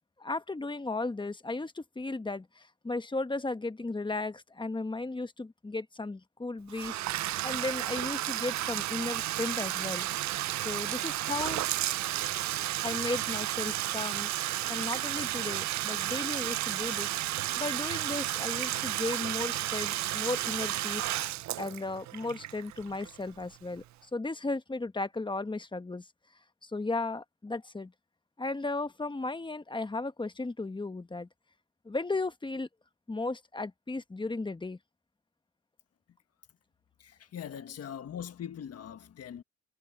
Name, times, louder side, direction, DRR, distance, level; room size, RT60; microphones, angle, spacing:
voice 1, 0.2-7.0 7.4-10.1 10.6-11.6 12.8-14.3 14.6-17.2 17.5-21.1 21.6-26.1 26.6-27.9 28.4-31.3 31.8-32.7 33.1-34.8, left 3 dB, 15° left, 1.2 m, -35 dB
Bathtub (filling or washing), 6.7-23.4, right 15 dB, 65° right, 0.6 m, -32 dB
voice 2, 37.0-39.4, left 9 dB, 55° left, 1.5 m, -41 dB
cardioid pair, 90°, 30 cm